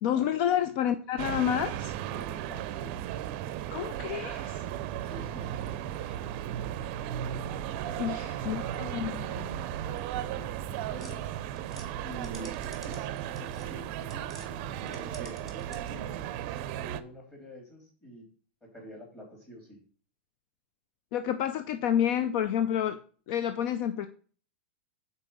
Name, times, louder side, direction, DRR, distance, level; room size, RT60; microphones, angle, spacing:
voice 1, 0.0-1.9 3.7-4.6 6.0-6.2 6.6-6.7 8.0-9.6 21.1-23.0 23.3-24.1, left 10 dB, 55° left, 10 dB, 0.5 m, -29 dB
sound 1, 1.2-17.0, right 11 dB, 50° right, 0.5 m, -35 dB
voice 2, 2.1-2.9 5.0-5.9 7.8-11.3 12.0-16.1 16.7-18.3 18.7-19.8, equal, 15° left, -2 dB, 3.1 m, -47 dB
sound 2, 11.0-14.5 14.8-16.1, right 2 dB, ahead, 1.6 m, -51 dB
5.7 x 4.1 x 5.3 m, 0.43 s
hypercardioid pair, 120°, 7 cm